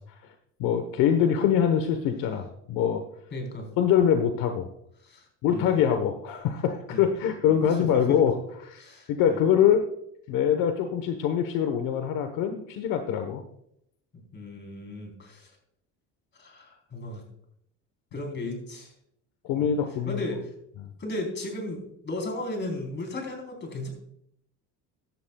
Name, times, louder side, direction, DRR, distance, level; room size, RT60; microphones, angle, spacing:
voice 1, 0.6-3.0 3.8-4.7 5.4-8.4 8.6-8.8 9.1-9.8 10.3-13.4 19.4-20.3 20.8-20.9, left 8 dB, 75° left, 7 dB, 1.2 m, -24 dB
voice 2, 3.3-3.7 5.0-5.7 6.9-7.1 7.5-8.2 8.8-9.4 14.1-15.5 16.3-17.2 18.1-18.9 19.6-19.7 20.1-20.5 21.0-23.9, left 2 dB, 35° left, 2 dB, 3.8 m, -35 dB
15.0 x 11.0 x 2.3 m, 0.73 s
cardioid pair, 120°, 33 cm